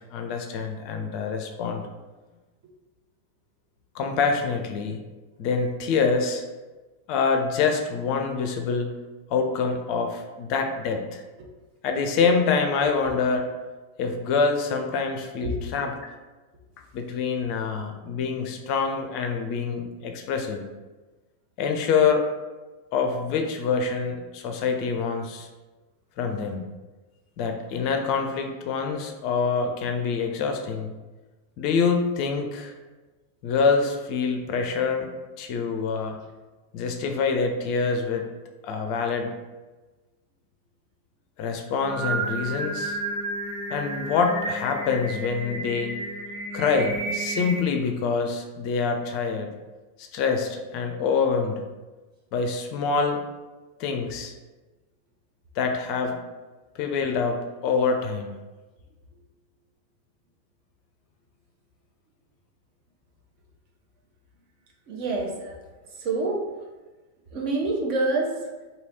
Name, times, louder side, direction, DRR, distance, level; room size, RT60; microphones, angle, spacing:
voice 1, 0.1-1.8 3.9-5.0 5.4-6.4 7.1-8.9 9.3-11.2 11.8-13.5 14.0-16.1 16.9-20.6 21.6-22.3 22.9-25.5 26.2-26.6 27.4-30.9 31.6-32.7 33.4-35.1 35.4-36.2 36.7-38.3 38.6-39.3 41.4-43.0 43.7-46.0 46.5-49.5 50.0-51.6 52.3-53.2 53.8-54.3 55.6-56.2 56.7-58.3, left 5 dB, 45° left, 4 dB, 0.4 m, -25 dB
Singing, 41.7-47.6, right 2 dB, 65° right, 1.2 m, -32 dB
voice 2, 64.9-65.6 66.0-66.4 67.3-68.4, right 2 dB, 45° right, 0 dB, 0.8 m, -27 dB
3.1 x 2.8 x 4.0 m, 1.2 s
figure-of-eight pair, 90°, 0 cm